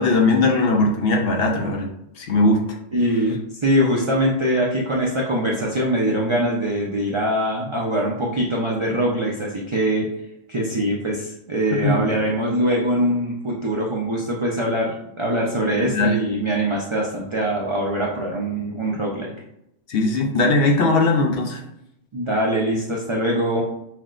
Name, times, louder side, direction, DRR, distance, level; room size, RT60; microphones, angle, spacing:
voice 1, 0.0-1.9 2.2-2.6 11.7-12.1 15.8-16.2 19.9-21.6, left 2 dB, 60° left, 1 dB, 0.7 m, -19 dB
voice 2, 2.9-10.1 10.5-19.3 22.1-23.6, right 1 dB, 50° right, -3 dB, 0.3 m, -23 dB
5.7 x 2.1 x 2.4 m, 0.81 s
omnidirectional pair, 1.2 m